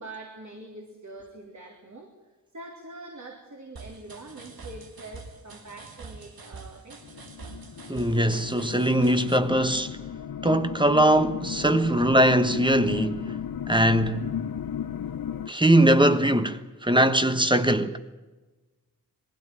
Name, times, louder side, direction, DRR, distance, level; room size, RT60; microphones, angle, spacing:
voice 1, 0.0-2.1 2.5-7.0, right 2 dB, 50° right, 3.5 m, -44 dB
sound 1, 3.8-9.4, right 4 dB, 85° right, 1.9 m, -45 dB
sound 2, 7.0-15.5, left 8 dB, 75° left, 0.7 m, -35 dB
voice 2, 7.9-10.0 10.4-13.4 13.7-14.3 15.5-18.0, right 1 dB, 15° right, 1.3 m, -21 dB
22.0 x 16.0 x 8.9 m
wide cardioid pair, 70°, 35 cm